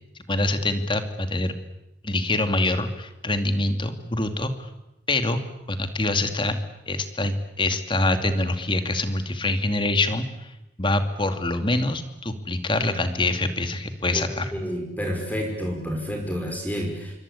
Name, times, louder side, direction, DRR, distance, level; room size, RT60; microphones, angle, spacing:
voice 1, 0.3-1.5 2.0-4.7 5.1-5.4 5.7-6.6 6.9-10.5 10.8-14.5, left 2 dB, 30° left, 8 dB, 2.4 m, -25 dB
voice 2, 14.5-17.1, equal, 10° left, 2 dB, 5.7 m, -29 dB
27.5 x 23.5 x 8.5 m, 0.92 s
head